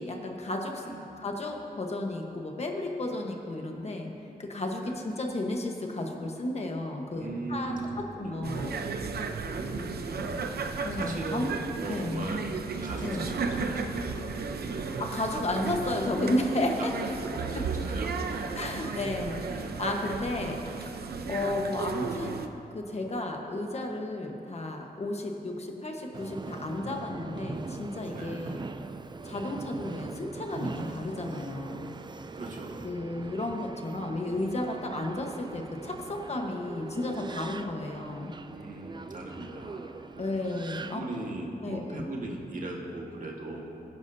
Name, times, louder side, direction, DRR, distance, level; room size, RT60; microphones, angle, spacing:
voice 1, 0.0-0.8 1.2-4.1 4.4-8.8 10.8-11.5 11.9-12.2 13.0-13.3 15.0-16.9 17.3-17.7 18.5-20.9 21.3-22.4 22.7-28.6 29.2-31.9 32.8-38.3 40.2-41.0 41.6-42.0, left 1 dB, 40° left, 2 dB, 1.2 m, -33 dB
voice 2, 0.8-1.1 4.8-4.9 7.1-8.5 9.5-10.5 10.9-11.5 11.8-12.4 12.8-14.4 14.7-14.9 16.8-19.3 19.6-19.8 20.7-21.4 28.1-28.4 32.3-32.8 38.5-39.9 40.1-40.3 40.9-43.7, right 2 dB, 55° right, -1 dB, 1.6 m, -39 dB
sound 1, 7.1-17.1, right 1 dB, 10° right, 1.0 m, -52 dB
sound 2, 8.4-22.5, right 4 dB, 80° right, 0.7 m, -34 dB
Subway metro underground, 26.1-41.4, right 4 dB, 30° right, 0.3 m, -42 dB
21.0 x 10.5 x 2.7 m, 2.8 s
wide cardioid pair, 170°, 16 cm